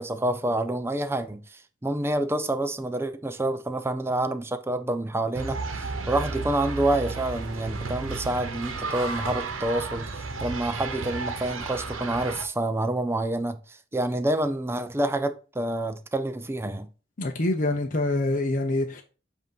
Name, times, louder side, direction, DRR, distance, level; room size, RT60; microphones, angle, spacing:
voice 1, 0.0-10.1 10.4-16.9, right 1 dB, 10° right, 0.5 m, -28 dB
sound 1, 5.3-12.4, right 4 dB, 75° right, 0.9 m, -33 dB
voice 2, 17.2-19.0, left 2 dB, 40° left, 0.7 m, -25 dB
7.8 x 2.7 x 5.3 m
head